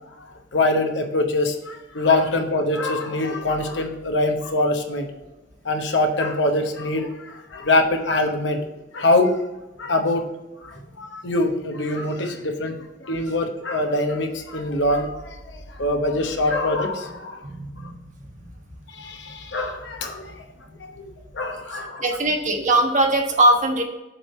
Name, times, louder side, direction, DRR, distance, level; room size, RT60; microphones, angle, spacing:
voice 1, 0.5-5.1 5.6-8.7 8.9-9.4 9.8-10.2 10.6-12.7 13.0-17.4 18.9-20.3 20.8-21.1 21.3-22.0, left 2 dB, 70° left, 4 dB, 0.9 m, -23 dB
voice 2, 17.4-17.9 18.4-18.5 22.0-23.8, right 1 dB, 45° right, 3 dB, 1.1 m, -20 dB
7.6 x 3.4 x 5.4 m, 1.0 s
head